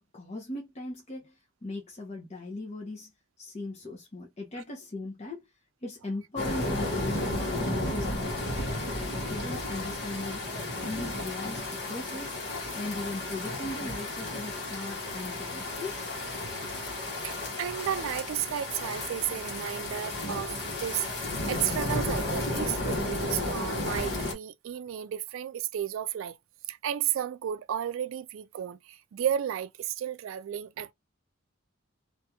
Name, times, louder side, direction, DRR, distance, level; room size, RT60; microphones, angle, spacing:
voice 1, 0.0-3.1 3.4-5.4 5.8-8.7 9.1-12.4 12.7-16.0, left 2 dB, 35° left, 0.8 m, -39 dB
sound 1, 6.4-24.3, left 2 dB, 55° left, 1.2 m, -33 dB
voice 2, 17.2-20.5 20.8-26.4 26.7-30.9, right 10 dB, 80° right, 0.3 m, -33 dB
2.8 x 2.5 x 2.3 m
head